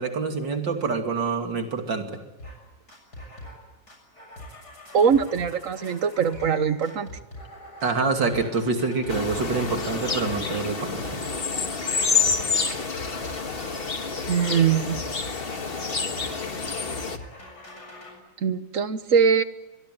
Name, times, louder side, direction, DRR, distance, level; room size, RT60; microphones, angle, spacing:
voice 1, 0.0-2.1 7.8-11.1, right 4 dB, 75° right, 4 dB, 3.3 m, -26 dB
sound 1, 2.4-2.6 2.9-3.6 3.9-10.5 10.8-11.5 11.7-18.1, left 1 dB, 60° left, 7.7 m, -43 dB
voice 2, 4.9-7.1 14.3-15.0 18.4-19.4, right 7 dB, 50° right, 12 dB, 1.3 m, -22 dB
sound 2, 9.1-17.2, left 4 dB, 35° left, 1.6 m, -28 dB
24.0 x 22.0 x 9.3 m, 1.0 s
omnidirectional pair, 2.0 m